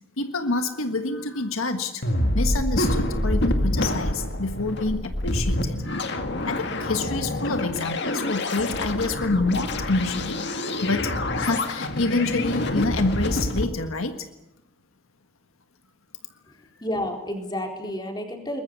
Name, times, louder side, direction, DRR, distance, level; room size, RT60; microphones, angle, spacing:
voice 1, 0.2-2.0 2.3-5.8 6.4-10.4 10.8-14.3, left 3 dB, 80° left, 7 dB, 1.6 m, -27 dB
sound 1, 2.0-13.6, left 1 dB, 55° left, 2.1 m, -26 dB
voice 2, 16.5-18.6, left 1 dB, 20° left, 3 dB, 4.2 m, -31 dB
22.5 x 21.5 x 8.3 m, 0.88 s
head